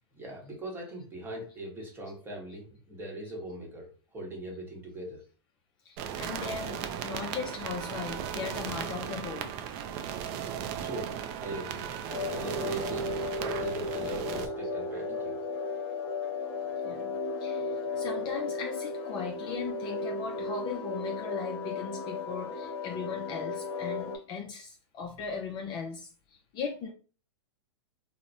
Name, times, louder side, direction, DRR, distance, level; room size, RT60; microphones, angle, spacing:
voice 1, 0.2-5.2 10.8-11.1 11.4-11.9 12.3-15.4, right 1 dB, 15° right, 1.0 m, -40 dB
voice 2, 5.8-9.5 16.8-26.9, left 5 dB, 30° left, 0.4 m, -38 dB
sound 1, 6.0-14.5, right 8 dB, 35° right, 0.4 m, -36 dB
sound 2, 12.1-24.2, left 3 dB, 55° left, 0.9 m, -35 dB
2.9 x 2.1 x 2.6 m
hypercardioid pair, 125°, 15 cm